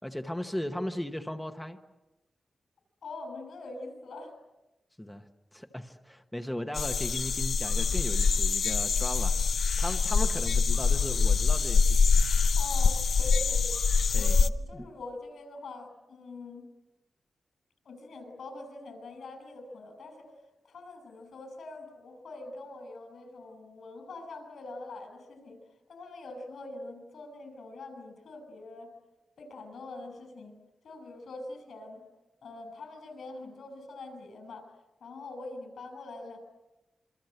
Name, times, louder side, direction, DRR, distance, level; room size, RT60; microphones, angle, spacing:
voice 1, 0.0-1.8 5.0-9.4 9.8-12.0 14.1-14.3 14.8-14.9, left 1 dB, 5° left, 5 dB, 1.1 m, -37 dB
voice 2, 3.0-4.3 12.6-16.7 17.8-20.3 20.6-25.6 25.9-28.9 29.4-30.5 30.8-32.0 32.4-34.7 35.0-36.4, left 2 dB, 80° left, 7 dB, 6.5 m, -44 dB
sound 1, 6.8-14.5, left 5 dB, 65° left, 0.8 m, -25 dB
27.0 x 25.0 x 7.9 m, 1.0 s
wide cardioid pair, 180°, 0 cm